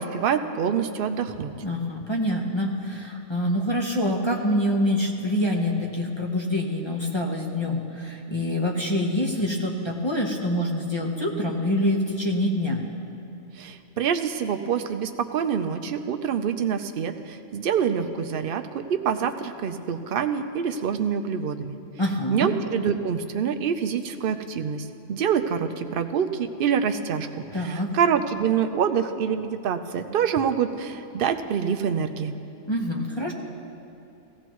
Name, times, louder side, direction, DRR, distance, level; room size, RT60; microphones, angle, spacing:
voice 1, 0.0-1.5 13.6-21.8 22.3-27.3 27.5-32.3, right 7 dB, 55° right, 7 dB, 0.7 m, -26 dB
voice 2, 1.6-12.8 22.0-22.5 27.5-27.9 32.7-33.3, left 1 dB, 20° left, -2 dB, 0.9 m, -26 dB
17.5 x 15.5 x 3.1 m, 2.7 s
omnidirectional pair, 1.5 m